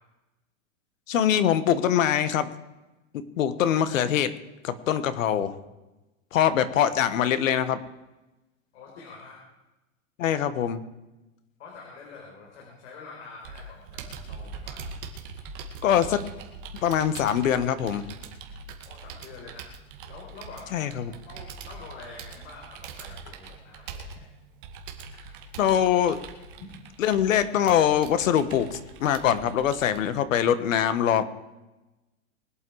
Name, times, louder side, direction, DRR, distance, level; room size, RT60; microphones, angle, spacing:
voice 1, 1.1-2.5 3.1-4.3 4.6-5.5 6.3-7.8 10.2-10.8 15.8-16.2 16.8-18.0 20.7-21.1 25.6-26.2 27.0-31.2, left 9 dB, 85° left, 13 dB, 1.6 m, -23 dB
voice 2, 6.4-6.8 8.7-9.4 11.6-14.9 18.8-19.7 20.0-24.3 26.5-26.7, left 4 dB, 60° left, -2 dB, 4.6 m, -46 dB
Computer keyboard, 13.4-30.0, right 5 dB, 40° right, 2.3 m, -42 dB
23.5 x 8.9 x 4.9 m, 1.0 s
supercardioid pair, 175°, 39 cm